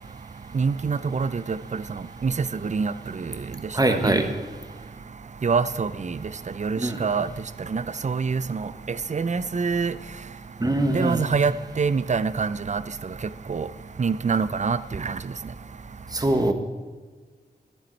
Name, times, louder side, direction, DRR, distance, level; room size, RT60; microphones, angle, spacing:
voice 1, 0.5-1.8 2.2-2.3 2.6-2.9 3.2-3.3 3.9-4.2 5.4-6.2 6.6-7.3 7.7-8.7 9.1-9.9 10.9-12.8 13.5-13.7 14.0-15.2, right 5 dB, 45° right, 15 dB, 0.5 m, -25 dB
voice 2, 3.7-4.3 6.8-7.0 10.6-11.2 16.1-16.5, right 1 dB, 20° right, 6 dB, 1.4 m, -22 dB
12.0 x 12.0 x 4.6 m, 1.5 s
wide cardioid pair, 95°, 17 cm